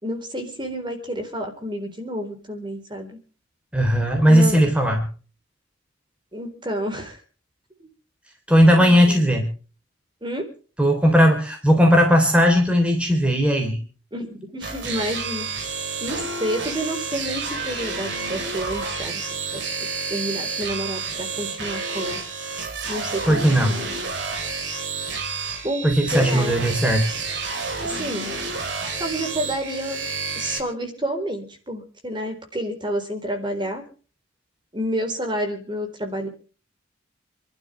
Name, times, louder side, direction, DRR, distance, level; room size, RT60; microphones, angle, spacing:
voice 1, 0.0-3.2 4.3-4.6 6.3-7.2 7.8-7.9 8.8-9.3 10.2-10.4 14.1-15.7 16.0-22.2 22.9-24.0 25.6-26.6 27.8-28.3 29.0-30.0 30.4-33.8 34.7-36.3, equal, 25° right, 4 dB, 4.0 m, -30 dB
voice 2, 3.7-5.1 8.5-9.5 10.8-13.8 23.3-23.8 25.8-27.0, equal, 5° right, 3 dB, 3.5 m, -17 dB
sound 1, 14.6-30.6, right 4 dB, 65° right, 4.1 m, -30 dB
29.5 x 12.0 x 3.3 m, 0.39 s
head